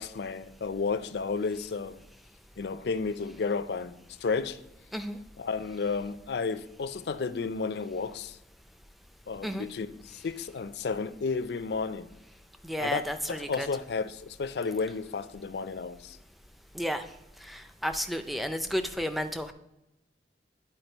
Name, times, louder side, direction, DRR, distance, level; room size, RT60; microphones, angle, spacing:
voice 1, 0.0-2.0 2.6-3.9 4.2-4.6 5.4-8.4 9.3-12.1 12.8-13.0 13.3-16.2, left 4 dB, 70° left, 0.4 m, -32 dB
voice 2, 12.6-13.7 16.7-17.0 17.4-19.5, equal, ahead, 0.4 m, -32 dB
9.6 x 4.5 x 4.4 m
head